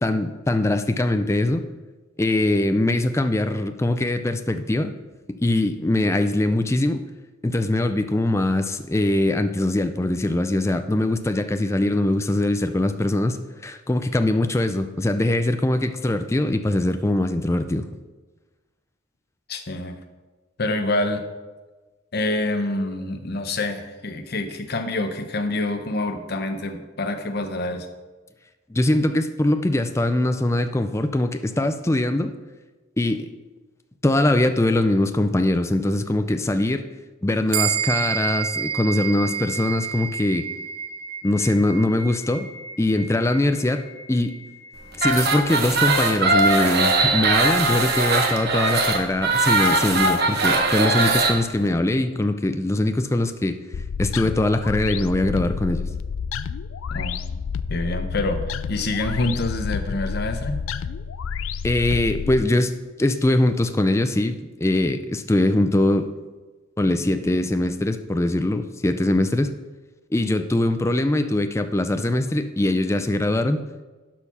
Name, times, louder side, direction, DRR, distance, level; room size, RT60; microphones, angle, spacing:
voice 1, 0.0-1.7 2.2-4.9 5.3-7.0 7.4-13.4 13.6-17.9 28.7-32.3 33.0-33.3 34.0-36.8 37.2-40.5 41.2-42.5 42.8-43.8 44.1-44.3 45.0-53.6 54.0-55.9 61.6-66.1 66.8-69.5 70.1-73.6, left 1 dB, 15° left, 8 dB, 0.4 m, -22 dB
voice 2, 19.5-20.0 20.6-21.2 22.1-27.9 56.9-57.1 57.7-60.6, left 2 dB, 50° left, 7 dB, 0.9 m, -26 dB
sound 1, 37.5-47.3, right 8 dB, 90° right, 0.8 m, -31 dB
sound 2, 44.9-51.3, right 3 dB, 50° right, 1.1 m, -20 dB
sound 3, 53.7-62.5, left 6 dB, 75° left, 0.4 m, -29 dB
12.0 x 4.6 x 5.6 m, 1.2 s
head